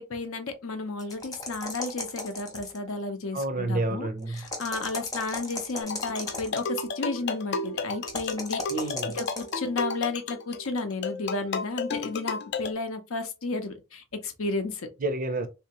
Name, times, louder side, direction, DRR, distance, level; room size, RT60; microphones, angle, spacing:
voice 1, 0.0-8.6 9.1-14.9, left 3 dB, 70° left, 0.7 m, -32 dB
sound 1, 1.0-2.9 4.3-6.7 8.0-9.6, left 2 dB, 15° left, 0.7 m, -36 dB
voice 2, 3.3-4.4 8.7-9.2 15.0-15.5, right 2 dB, 40° right, 0.4 m, -29 dB
sound 2, 5.8-12.7, left 4 dB, 50° left, 0.3 m, -33 dB
3.4 x 2.8 x 2.9 m
head